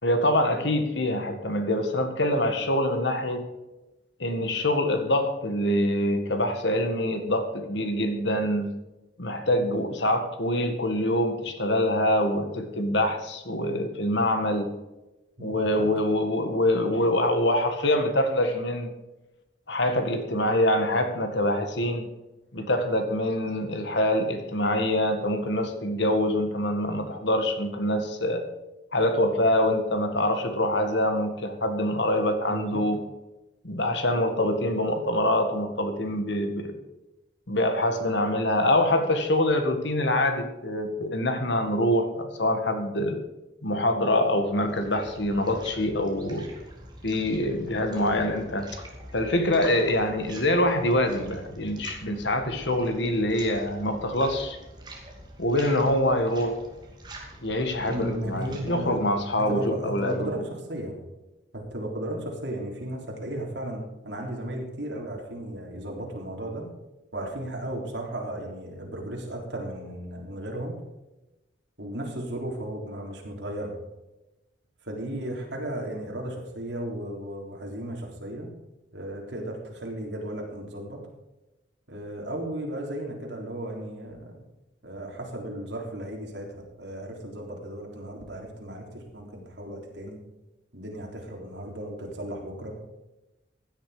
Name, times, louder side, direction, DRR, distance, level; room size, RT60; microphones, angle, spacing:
voice 1, 0.0-3.4 4.2-8.7 9.2-14.7 15.4-18.9 19.7-22.1 22.5-28.4 28.9-33.0 33.6-36.8 37.5-43.2 43.6-46.5 47.0-48.7 49.1-54.6 55.4-56.6 57.4-60.3, left 1 dB, 70° left, 7 dB, 1.9 m, -25 dB
voice 2, 15.4-15.9 32.5-32.9 57.9-59.0 59.4-60.9 61.5-66.7 67.1-70.7 71.8-73.7 74.8-78.5 78.9-81.0 81.9-84.4 84.8-90.2 90.7-92.7, right 1 dB, 65° right, 0 dB, 3.7 m, -35 dB
sound 1, 44.3-60.3, right 1 dB, 20° right, 2.5 m, -45 dB
16.0 x 10.5 x 5.1 m, 1.0 s
head